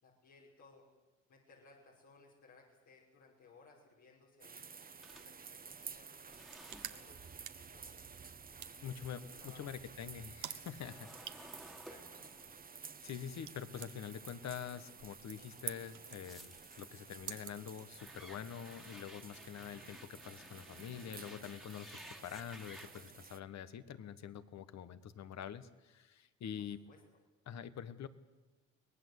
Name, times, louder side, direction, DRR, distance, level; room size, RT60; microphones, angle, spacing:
voice 1, 0.0-0.9 1.3-4.7 5.2-6.1 6.9-7.2 7.5-7.9 8.7-9.6 11.8-12.4 26.6-27.0, left 4 dB, 80° left, -3 dB, 5.6 m, -62 dB
sound 1, 4.4-23.4, right 5 dB, 30° right, 1.0 m, -53 dB
sound 2, 5.0-9.3 9.6-14.6 15.1-23.1, equal, ahead, 1.9 m, -57 dB
sound 3, 6.3-18.3, right 12 dB, 80° right, 1.3 m, -52 dB
voice 2, 8.8-11.1 13.0-26.8 27.4-28.1, left 8 dB, 65° left, 14 dB, 1.4 m, -46 dB
24.5 x 19.0 x 8.3 m, 1.1 s
cardioid pair, 90°, 30 cm